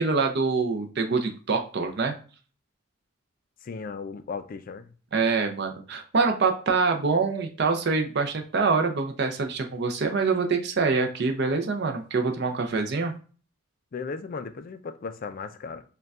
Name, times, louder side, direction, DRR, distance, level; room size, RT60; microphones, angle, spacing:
voice 1, 0.0-2.1 5.1-13.1, right 4 dB, 50° right, 0.5 m, -25 dB
voice 2, 3.6-4.9 13.9-15.8, left 5 dB, 40° left, 0.3 m, -36 dB
6.5 x 2.2 x 2.3 m
head